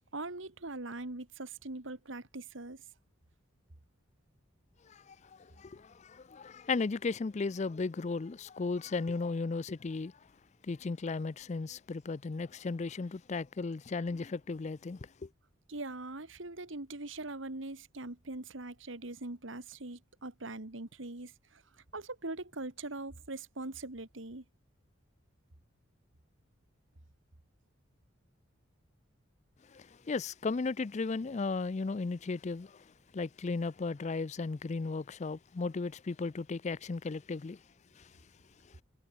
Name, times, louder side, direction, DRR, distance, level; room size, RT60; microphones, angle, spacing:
voice 1, 0.0-2.8 15.7-21.6 21.9-24.4, right 2 dB, 70° right, 2.0 m, -42 dB
voice 2, 4.8-10.1 10.6-15.3 29.7-32.8 33.1-37.6 38.0-38.1, left 4 dB, 35° left, 0.4 m, -35 dB
head